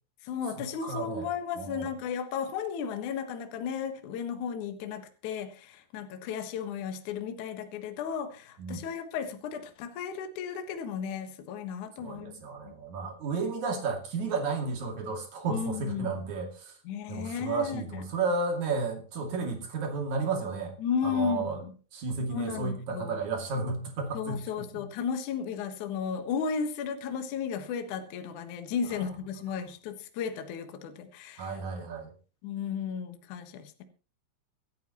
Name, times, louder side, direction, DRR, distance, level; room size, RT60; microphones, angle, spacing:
voice 1, 0.2-12.7 15.5-16.2 16.8-18.0 20.8-21.7 22.3-23.3 24.1-31.5 32.4-33.8, left 7 dB, 65° left, 7 dB, 2.0 m, -34 dB
voice 2, 0.8-1.3 1.6-1.9 8.6-8.8 12.0-16.7 17.1-20.7 21.0-21.6 21.9-24.9 31.4-32.1, right 4 dB, 45° right, 2 dB, 3.3 m, -32 dB
25.0 x 9.3 x 3.0 m, 0.36 s
omnidirectional pair, 5.5 m